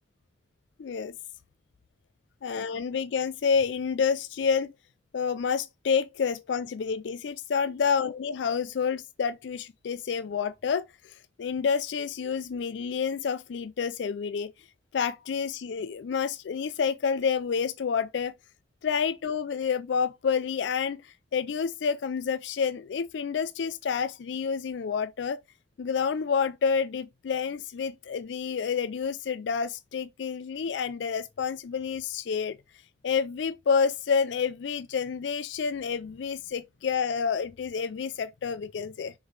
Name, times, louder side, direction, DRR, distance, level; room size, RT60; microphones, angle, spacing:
voice 1, 0.8-1.2 2.4-4.7 5.1-14.5 14.9-18.3 18.8-25.4 25.8-32.6 33.0-39.1, left 6 dB, 75° left, 0.4 m, -29 dB
6.6 x 4.5 x 3.2 m
head